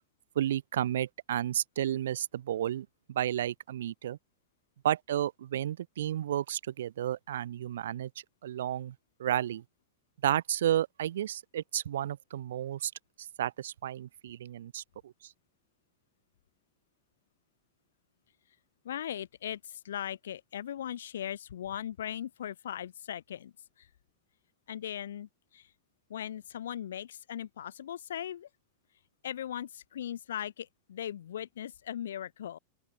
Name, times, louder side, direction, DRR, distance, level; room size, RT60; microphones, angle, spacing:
voice 1, 0.3-4.2 4.8-8.1 8.4-8.9 9.2-9.6 10.2-12.9 13.4-15.1, right 11 dB, 60° right, 1.5 m, -32 dB
voice 2, 18.9-23.5 23.8-23.9 24.7-25.7 26.1-28.5 29.2-32.6, left 10 dB, 60° left, 3.6 m, -39 dB
open air
figure-of-eight pair, 90°, 0 cm